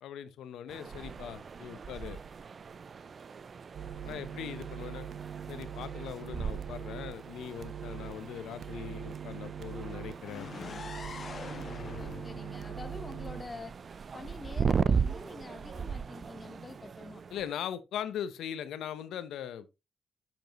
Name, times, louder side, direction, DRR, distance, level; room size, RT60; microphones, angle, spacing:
voice 1, 0.0-2.2 4.0-5.1 5.5-10.8 17.3-19.8, left 9 dB, 90° left, 0.7 m, -40 dB
sound 1, 0.7-17.5, right 6 dB, 45° right, 0.4 m, -37 dB
sound 2, 3.7-13.4, right 9 dB, 70° right, 0.9 m, -43 dB
sound 3, 10.2-14.1, left 5 dB, 50° left, 1.1 m, -45 dB
voice 2, 11.9-13.7 14.1-17.2, left 3 dB, 30° left, 0.8 m, -46 dB
7.8 x 7.0 x 2.9 m
cardioid pair, 90°, 0 cm